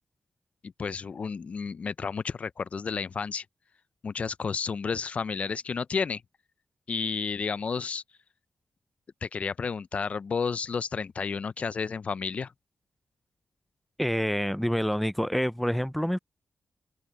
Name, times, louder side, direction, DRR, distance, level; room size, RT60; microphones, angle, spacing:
voice 1, 0.6-3.4 4.0-6.2 6.9-8.0 9.2-12.5, left 5 dB, 60° left, 0.6 m, -31 dB
voice 2, 14.0-16.2, equal, 5° left, 0.5 m, -27 dB
open air
cardioid pair, 50°, 3 cm